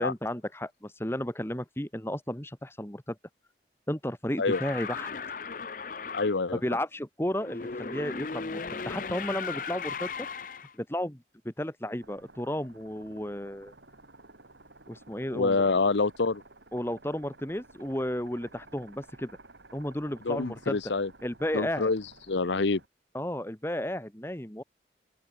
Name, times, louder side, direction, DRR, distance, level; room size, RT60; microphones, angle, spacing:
voice 1, 0.0-3.1 3.9-5.1 6.5-10.3 10.8-13.7 14.9-15.7 16.7-19.3 19.7-20.8 21.2-21.9 23.1-24.6, left 1 dB, 15° left, 1.7 m, -33 dB
sound 1, 4.5-6.4 7.4-10.7, left 5 dB, 50° left, 0.7 m, -36 dB
voice 2, 6.1-6.6 15.3-16.4 20.2-21.1 21.5-22.8, left 3 dB, 80° left, 0.8 m, -26 dB
sound 2, 12.0-22.9, right 2 dB, 80° right, 4.8 m, -54 dB
open air
head